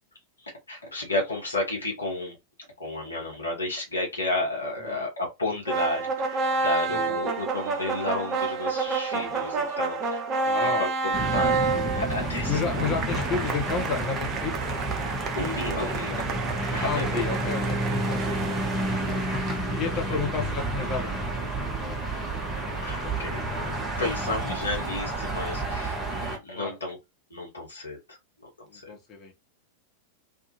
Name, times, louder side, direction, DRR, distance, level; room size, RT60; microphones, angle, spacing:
voice 1, 0.4-2.4 2.8-10.2 10.6-12.9 15.3-16.3 16.7-17.3 17.7-17.8 18.3-18.4 19.1-19.2 19.5-19.8 22.8-27.0 27.3-28.2 28.6-28.9, left 2 dB, 75° left, 1.0 m, -32 dB
sound 1, 5.7-19.8, right 4 dB, 30° right, 0.6 m, -30 dB
voice 2, 10.4-10.8 12.5-14.8 16.8-18.7 19.8-21.5 21.8-22.4 22.7-22.8 26.5-26.8 28.7-29.3, left 5 dB, 30° left, 1.0 m, -32 dB
sound 2, 11.1-26.4, right 1 dB, 5° right, 1.1 m, -30 dB
2.7 x 2.4 x 2.8 m
figure-of-eight pair, 90°, 0 cm